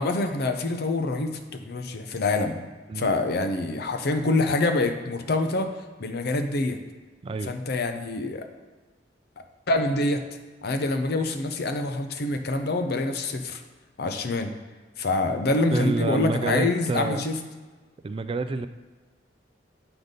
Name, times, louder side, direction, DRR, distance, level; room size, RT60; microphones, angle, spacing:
voice 1, 0.0-2.6 3.0-5.7 6.0-6.8 7.4-8.4 9.4-10.2 10.6-13.6 14.0-14.5 15.0-17.3, left 2 dB, 60° left, 6 dB, 0.6 m, -26 dB
voice 2, 15.7-17.2 18.0-18.7, right 3 dB, 30° right, 10 dB, 0.3 m, -28 dB
7.8 x 4.0 x 5.1 m, 1.3 s
head